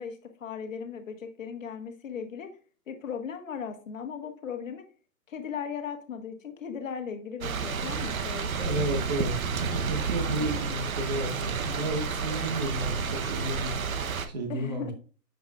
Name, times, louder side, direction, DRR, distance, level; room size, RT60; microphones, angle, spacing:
voice 1, 0.0-2.5 2.9-4.8 5.3-8.8 14.5-14.9, left 7 dB, 50° left, 6 dB, 1.6 m, -37 dB
sound 1, 7.4-14.3, right 5 dB, 55° right, 1.0 m, -30 dB
voice 2, 8.6-13.8 14.3-14.9, right 1 dB, 25° right, 4 dB, 1.3 m, -32 dB
8.9 x 7.8 x 2.4 m, 0.37 s
hypercardioid pair, 175°, 50 cm